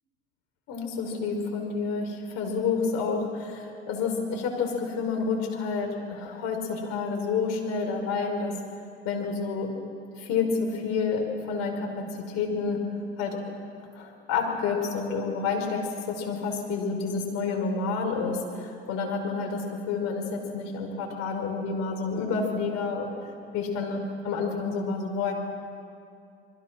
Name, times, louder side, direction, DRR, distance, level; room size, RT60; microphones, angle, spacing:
voice 1, 0.7-8.5 9.1-9.7 10.1-11.9 12.3-12.8 13.2-13.4 13.9-15.8 16.1-23.1 23.5-25.3, left 5 dB, 60° left, 3 dB, 5.3 m, -29 dB
27.0 x 22.0 x 6.2 m, 2.5 s
hypercardioid pair, 70°, 30 cm